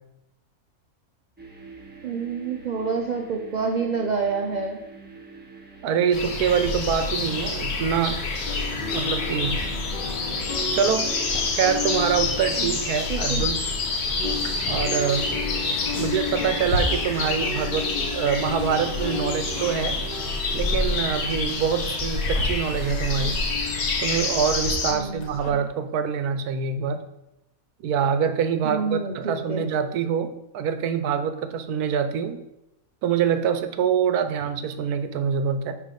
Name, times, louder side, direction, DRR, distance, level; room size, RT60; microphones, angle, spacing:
sound 1, 1.4-20.9, right 4 dB, 5° right, 1.0 m, -46 dB
voice 1, 2.0-4.8 12.6-12.7 13.1-13.4 15.9-16.2 23.1-23.4 24.9-25.6 28.6-29.7, right 5 dB, 50° right, 2 dB, 0.5 m, -28 dB
voice 2, 5.8-8.2 8.9-9.6 10.7-11.1 11.5-13.6 14.7-15.3 15.9-20.0 20.5-23.3 24.0-27.0 27.8-32.4 33.0-35.8, right 7 dB, 85° right, 9 dB, 1.2 m, -25 dB
sound 2, 6.1-24.9, left 3 dB, 85° left, 1.6 m, -27 dB
sound 3, 8.5-13.8 14.1-25.5, left 3 dB, 35° left, 1.1 m, -33 dB
9.7 x 3.3 x 5.2 m, 0.88 s
omnidirectional pair, 1.6 m